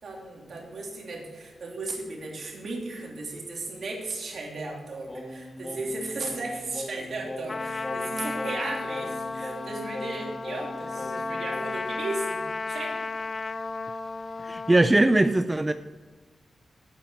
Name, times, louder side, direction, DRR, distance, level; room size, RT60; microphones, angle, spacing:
voice 1, 0.0-13.0, right 2 dB, 65° right, -1 dB, 3.0 m, -36 dB
Singing, 5.1-11.9, left 1 dB, 20° left, 1.5 m, -39 dB
Trumpet, 7.5-14.8, left 3 dB, 40° left, 0.5 m, -33 dB
voice 2, 14.4-15.7, right 2 dB, 20° right, 10 dB, 0.4 m, -21 dB
8.9 x 8.9 x 6.3 m, 1.3 s
cardioid pair, 85°, 0 cm